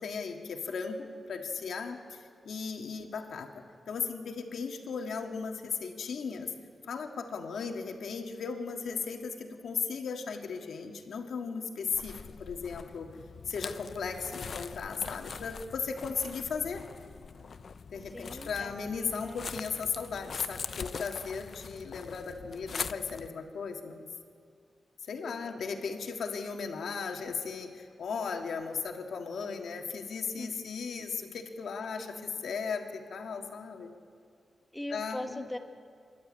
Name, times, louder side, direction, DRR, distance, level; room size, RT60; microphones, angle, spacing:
voice 1, 0.0-6.5 6.9-13.1 13.5-16.8 17.9-24.1 25.1-32.1 32.4-33.9 34.9-35.5, left 5 dB, 80° left, 3 dB, 1.8 m, -36 dB
sound 1, 11.9-23.3, left 5 dB, 50° left, 0.5 m, -43 dB
voice 2, 18.0-19.5 25.2-25.6 30.4-30.7 32.0-32.4 34.7-35.6, left 1 dB, 10° left, 5 dB, 1.2 m, -42 dB
29.0 x 12.0 x 8.7 m, 2.2 s
wide cardioid pair, 160°, 0 cm